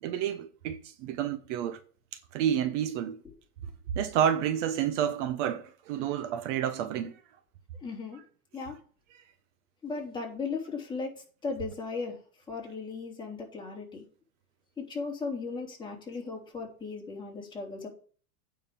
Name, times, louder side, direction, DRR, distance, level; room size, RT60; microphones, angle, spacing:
voice 1, 0.0-1.8 2.3-3.2 3.9-7.1, right 9 dB, 55° right, 1.1 m, -29 dB
voice 2, 7.8-8.2 8.5-8.8 9.8-12.2 12.5-14.0 14.8-17.9, left 4 dB, 10° left, 3.4 m, -37 dB
9.1 x 5.2 x 7.3 m
supercardioid pair, 140°, 42 cm